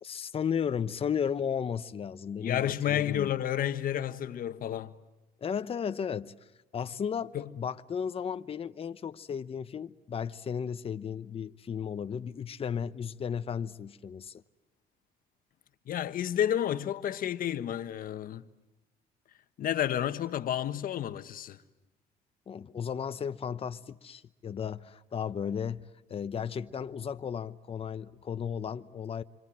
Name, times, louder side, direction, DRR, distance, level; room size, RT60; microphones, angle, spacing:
voice 1, 0.0-3.3 5.4-6.3 6.7-14.4 22.5-29.2, left 7 dB, 35° left, 0.9 m, -34 dB
voice 2, 2.4-5.0 7.3-7.5 15.9-18.4 19.6-21.6, left 10 dB, 55° left, 1.4 m, -31 dB
27.5 x 26.0 x 7.5 m
cardioid pair, 110°, 17 cm